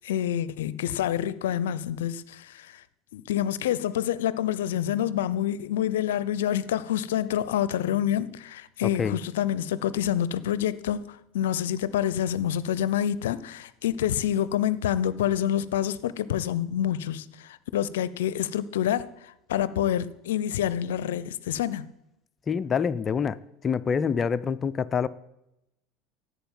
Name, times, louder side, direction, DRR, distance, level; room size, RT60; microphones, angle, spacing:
voice 1, 0.0-2.8 3.1-21.9, left 10 dB, 75° left, 0.6 m, -27 dB
voice 2, 8.8-9.2 22.5-23.4 23.6-25.1, left 6 dB, 30° left, 0.6 m, -26 dB
11.5 x 8.4 x 9.2 m
hypercardioid pair, 75°, 0 cm